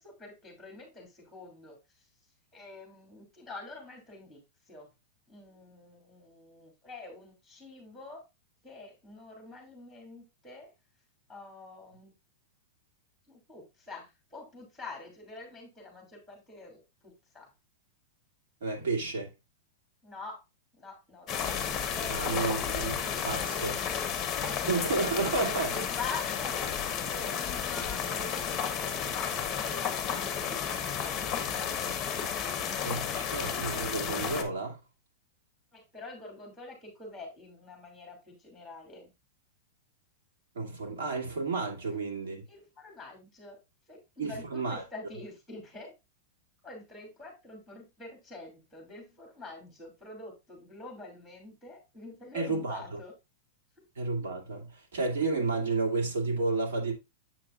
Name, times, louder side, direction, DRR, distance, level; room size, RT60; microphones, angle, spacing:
voice 1, 0.0-1.8 2.5-4.4 4.7-4.9 5.3-8.2 8.6-10.7 11.3-12.1 13.3-17.5 20.0-20.4 20.7-22.9 23.5-23.8 24.5-30.9 35.7-39.1 41.8-42.0 42.5-43.6 43.9-45.9 46.6-53.1, left 3 dB, ahead, 2.7 m, -46 dB
voice 2, 18.6-19.3 22.1-22.9 23.2-23.8 24.7-25.7 32.8-34.8 40.5-42.4 44.2-44.8 52.3-53.0 54.0-56.9, right 3 dB, 80° right, 2.4 m, -31 dB
sound 1, 21.3-34.4, left 8 dB, 15° left, 1.0 m, -32 dB
7.5 x 5.8 x 2.5 m
supercardioid pair, 165°, 0 cm